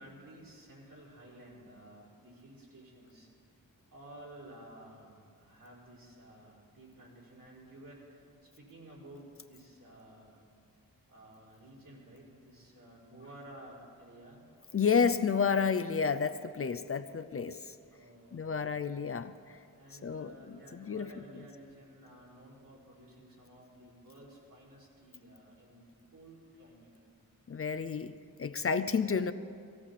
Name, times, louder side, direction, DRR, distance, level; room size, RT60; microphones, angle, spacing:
voice 1, 0.0-3.3 3.9-8.3 8.6-10.4 11.1-14.4 17.9-18.8 19.7-25.8 26.1-26.9, right 1 dB, 65° right, -5 dB, 4.8 m, -53 dB
voice 2, 14.7-17.7 18.3-19.3 20.0-21.1 27.5-29.3, left 6 dB, 40° left, 11 dB, 0.5 m, -31 dB
17.0 x 17.0 x 4.2 m, 2.2 s
wide cardioid pair, 80°, 35 cm